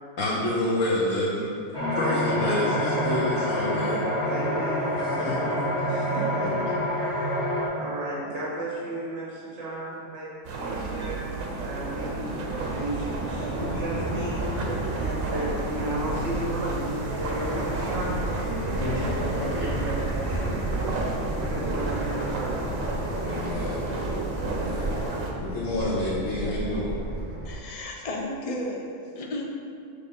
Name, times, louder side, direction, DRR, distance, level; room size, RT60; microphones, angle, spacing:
voice 1, 0.2-1.7 1.9-4.0 5.2-5.3 18.8-19.5 23.2-23.9 24.4-25.0 25.4-26.9, left 1 dB, 80° left, -7 dB, 1.4 m, -28 dB
sound 1, 1.7-7.7, equal, 20° left, 1.4 m, -27 dB
voice 2, 4.2-7.5 7.7-11.2 11.6-12.1 12.6-19.0 19.5-20.6 21.5-22.7, right 1 dB, 65° right, -7 dB, 1.8 m, -34 dB
sound 2, 10.4-25.3, right 3 dB, 80° right, 1.2 m, -32 dB
Fixed-wing aircraft airplane, 12.4-27.6, right 1 dB, 15° right, 0.5 m, -33 dB
voice 3, 27.4-28.9 29.1-29.5, left 1 dB, 35° left, 0 dB, 0.6 m, -33 dB
6.7 x 3.5 x 5.4 m, 2.5 s
omnidirectional pair, 1.3 m